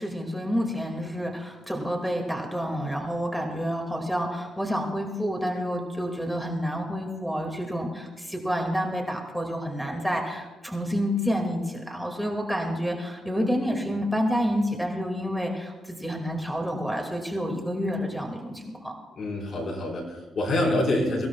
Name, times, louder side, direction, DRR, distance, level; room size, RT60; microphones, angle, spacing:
voice 1, 0.0-18.9, equal, ahead, 0 dB, 2.3 m, -29 dB
voice 2, 19.2-21.3, left 1 dB, 50° left, 0 dB, 4.7 m, -26 dB
23.5 x 16.0 x 2.4 m, 1.2 s
cardioid pair, 90°, 0 cm